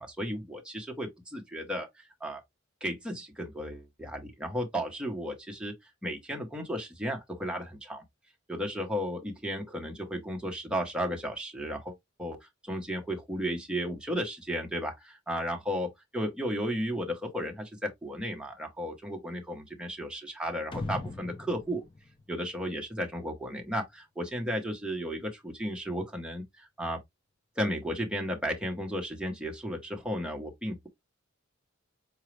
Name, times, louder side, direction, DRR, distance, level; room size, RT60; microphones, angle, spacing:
voice 1, 0.0-2.4 2.8-5.7 6.0-8.0 8.5-11.9 12.2-12.4 12.6-21.8 22.3-27.0 27.6-30.9, equal, 5° right, 0.9 m, -34 dB
sound 1, 20.7-23.2, left 2 dB, 25° left, 0.4 m, -40 dB
4.9 x 2.3 x 3.1 m
head